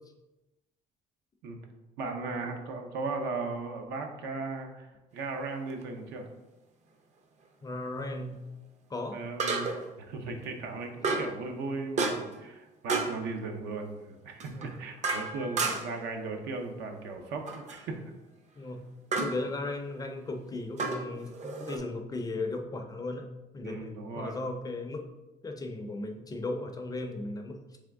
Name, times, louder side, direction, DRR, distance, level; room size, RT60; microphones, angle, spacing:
voice 1, 2.0-6.3 9.1-9.7 10.0-18.0 23.6-24.4, right 3 dB, 80° right, 4 dB, 0.6 m, -37 dB
sound 1, 5.7-5.8 9.4-9.9 11.0-11.4 12.0-12.4 12.9-13.2 14.4-16.0 17.5-17.8 19.1-19.4 20.8-21.8, right 3 dB, 45° right, 0.5 m, -31 dB
voice 2, 7.6-8.4 8.9-9.2 14.5-14.8 15.7-15.8 18.6-18.8 19.2-25.0 25.4-27.6, left 2 dB, 20° left, 4 dB, 0.4 m, -36 dB
3.5 x 3.2 x 3.5 m, 1.0 s
cardioid pair, 110°, 17 cm